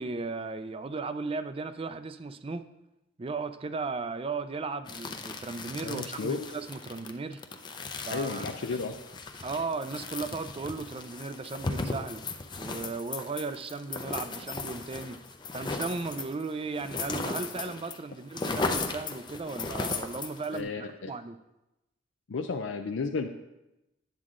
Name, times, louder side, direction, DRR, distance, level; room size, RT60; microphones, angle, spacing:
voice 1, 0.0-2.6 3.2-7.4 8.0-8.4 9.4-12.2 12.6-15.2 15.5-21.4, right 4 dB, 30° right, 11 dB, 0.4 m, -36 dB
sound 1, 4.9-18.0 18.2-20.6, left 3 dB, 25° left, 0.5 m, -36 dB
voice 2, 5.8-6.4 8.1-9.0 20.5-21.1 22.3-23.3, left 4 dB, 85° left, 4 dB, 0.5 m, -33 dB
9.5 x 7.4 x 3.7 m, 0.95 s
head